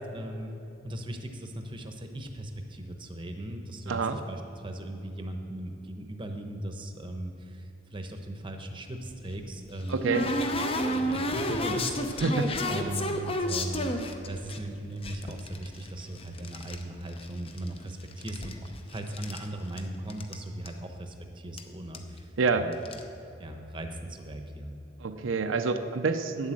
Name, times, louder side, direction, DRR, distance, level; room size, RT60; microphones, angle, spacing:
voice 1, 0.1-0.6 0.8-10.3 10.7-12.2 12.7-22.7 23.4-24.8, right 1 dB, 25° right, 5 dB, 0.9 m, -38 dB
voice 2, 3.9-4.2 9.9-10.2 12.2-12.5 22.4-22.7 25.0-26.5, right 4 dB, 75° right, 8 dB, 0.6 m, -27 dB
sound 1, 9.1-14.6 15.0-16.8 17.1-17.8 18.1-19.5 19.8-19.9 20.1-20.4 20.7-20.8 21.6-21.7 21.9-22.2 22.7-23.0, left 1 dB, 30° left, 0.7 m, -31 dB
9.7 x 7.8 x 7.6 m, 2.8 s
head